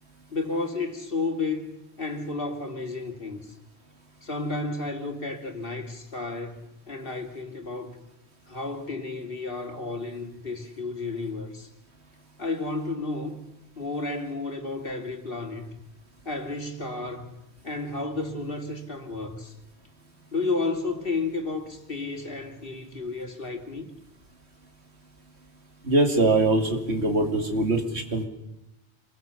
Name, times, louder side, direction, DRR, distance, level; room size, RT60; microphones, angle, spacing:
voice 1, 0.3-3.5 4.2-6.6 6.9-8.0 8.5-11.7 12.4-13.4 13.8-15.7 16.2-17.3 17.6-19.5 20.3-23.9, left 3 dB, 55° left, 2.7 m, -32 dB
voice 2, 25.9-28.2, right 2 dB, 70° right, 2.8 m, -22 dB
27.0 x 21.5 x 6.9 m
omnidirectional pair, 1.2 m